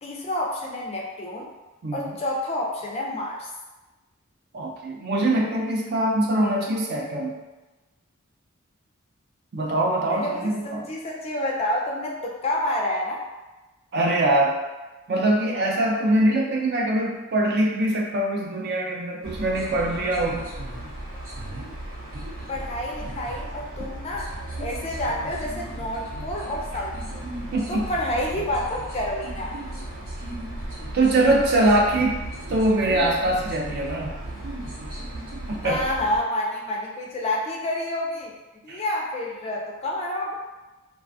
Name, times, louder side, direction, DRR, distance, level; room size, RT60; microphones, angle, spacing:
voice 1, 0.0-1.5 1.9-3.5 10.1-13.2 22.5-24.3 24.6-27.3 27.7-29.5 35.6-38.3 38.6-40.3, left 1 dB, 30° left, -2 dB, 0.3 m, -29 dB
voice 2, 4.5-7.4 9.5-10.8 13.9-14.6 15.1-20.4 27.5-27.9 30.9-32.2 32.5-34.2 35.5-35.8 38.7-38.8, right 1 dB, 45° right, -1 dB, 0.4 m, -23 dB
sound 1, 19.2-36.2, right 1 dB, 65° right, 0.8 m, -35 dB
2.4 x 2.3 x 2.6 m, 1.1 s
head